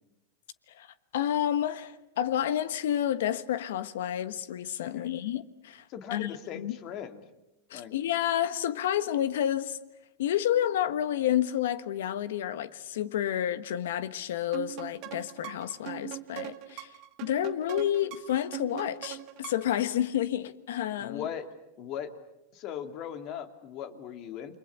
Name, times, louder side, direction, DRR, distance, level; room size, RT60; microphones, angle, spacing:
voice 1, 1.1-5.8 6.1-6.7 7.7-9.8 10.2-16.9 17.2-21.2, left 11 dB, 80° left, 1.3 m, -30 dB
voice 2, 4.8-5.1 5.9-7.2 7.7-7.9 21.0-21.5 21.8-22.1 22.5-24.6, left 9 dB, 45° left, 2.5 m, -39 dB
sound 1, 14.5-19.8, right 15 dB, 50° right, 1.7 m, -41 dB
29.5 x 23.0 x 8.5 m
supercardioid pair, 125°, 0 cm